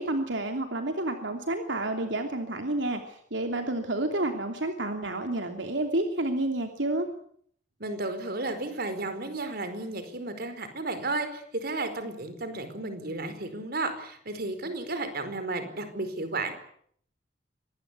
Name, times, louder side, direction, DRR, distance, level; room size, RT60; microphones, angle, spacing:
voice 1, 0.0-7.1, right 2 dB, 80° right, 5 dB, 3.0 m, -30 dB
voice 2, 7.8-16.6, right 2 dB, 55° right, 9 dB, 4.7 m, -33 dB
25.5 x 20.5 x 8.4 m, 0.64 s
head